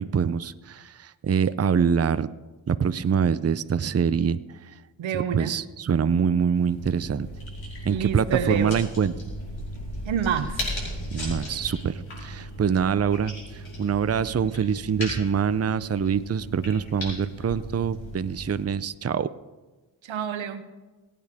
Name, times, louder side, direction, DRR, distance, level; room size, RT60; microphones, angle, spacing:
voice 1, 0.0-2.3 2.7-4.4 5.1-7.3 7.8-9.1 11.1-19.3, right 7 dB, 35° right, 14 dB, 0.6 m, -25 dB
voice 2, 5.0-5.5 7.9-8.8 10.0-10.7 20.0-20.6, right 8 dB, 90° right, 11 dB, 0.9 m, -28 dB
sound 1, 6.5-18.6, equal, 85° left, 5.2 m, -36 dB
21.5 x 8.7 x 3.6 m, 1.2 s
cardioid pair, 45°, 46 cm